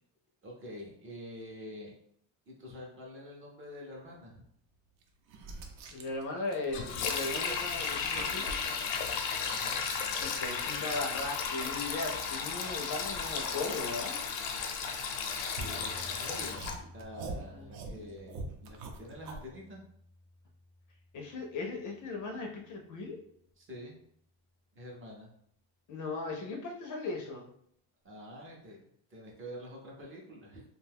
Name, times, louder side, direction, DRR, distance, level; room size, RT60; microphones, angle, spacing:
voice 1, 0.4-1.9 2.5-4.4 7.3-7.8 9.4-9.8 15.6-19.8 23.6-24.0 24.7-25.3 28.0-28.8 29.1-30.6, equal, 30° right, -2 dB, 0.5 m, -47 dB
sound 1, 5.0-7.3 7.6-9.9 10.3-16.0 16.5-19.5, right 3 dB, 85° right, 0.7 m, -46 dB
voice 2, 5.9-8.6 10.2-14.2 17.5-17.7 21.1-23.2 25.9-27.5, left 3 dB, 45° left, 1 dB, 0.4 m, -37 dB
Sink (filling or washing), 6.7-16.8, left 6 dB, 85° left, 0.6 m, -34 dB
sound 2, 15.6-24.4 24.8-24.9, equal, 50° right, 0.8 m, -52 dB
2.7 x 2.2 x 3.3 m, 0.69 s
cardioid pair, 175°, 46 cm